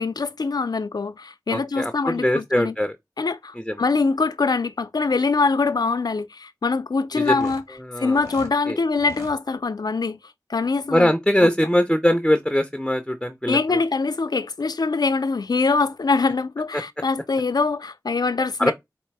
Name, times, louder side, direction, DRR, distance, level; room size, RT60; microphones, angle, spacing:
voice 1, 0.0-2.7 3.2-7.6 8.0-10.2 10.5-11.1 11.4-11.5 13.5-18.7, left 4 dB, 90° left, 0.4 m, -23 dB
voice 2, 1.5-2.9 3.6-3.8 7.1-7.5 7.8-8.2 8.7-8.8 10.9-13.8 16.7-16.8 18.6-18.7, equal, 5° left, 0.5 m, -22 dB
sound 1, 7.2-8.5 8.9-9.4, right 1 dB, 50° right, 1.7 m, -42 dB
4.1 x 2.6 x 4.6 m
wide cardioid pair, 60°, 7 cm